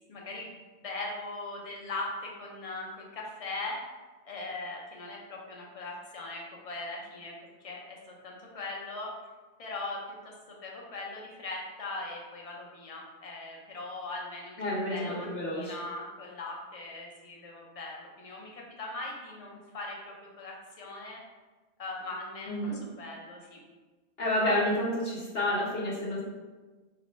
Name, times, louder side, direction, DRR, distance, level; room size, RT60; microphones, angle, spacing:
voice 1, 0.1-0.5 0.8-3.8 4.3-7.3 7.6-9.1 9.6-14.6 14.9-15.3 15.5-21.2 21.8-22.5 23.0-23.6, left 2 dB, 40° left, -1 dB, 0.6 m, -40 dB
voice 2, 14.6-15.7 22.5-22.8 24.2-26.2, left 1 dB, 65° left, -5 dB, 1.0 m, -29 dB
4.1 x 2.5 x 3.0 m, 1.3 s
omnidirectional pair, 1.1 m